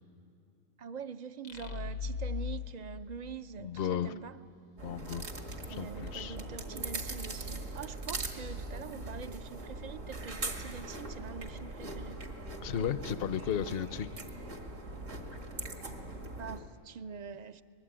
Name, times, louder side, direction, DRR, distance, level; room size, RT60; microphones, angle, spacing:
voice 1, 0.8-4.4 5.7-12.2 16.4-17.6, right 6 dB, 45° right, 11 dB, 0.6 m, -44 dB
sound 1, 1.4-4.1, left 5 dB, 85° left, 1.5 m, -39 dB
voice 2, 3.6-4.1 4.8-5.3 5.7-6.4 12.6-14.2, left 8 dB, 55° left, 13 dB, 0.8 m, -34 dB
sound 2, 4.8-16.6, right 2 dB, 70° right, 2.3 m, -41 dB
25.0 x 20.5 x 8.8 m, 2.6 s
omnidirectional pair, 1.4 m